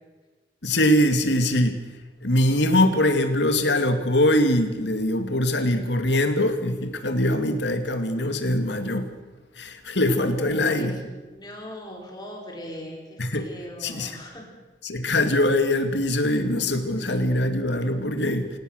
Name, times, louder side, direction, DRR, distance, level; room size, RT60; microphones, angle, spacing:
voice 1, 0.6-1.8 2.2-9.1 9.6-11.0 13.2-13.5 13.8-14.2 14.8-18.5, left 1 dB, 75° left, 8 dB, 2.3 m, -22 dB
voice 2, 10.2-14.5 17.0-17.1, equal, 20° left, 0 dB, 4.9 m, -39 dB
27.0 x 17.5 x 6.6 m, 1.2 s
head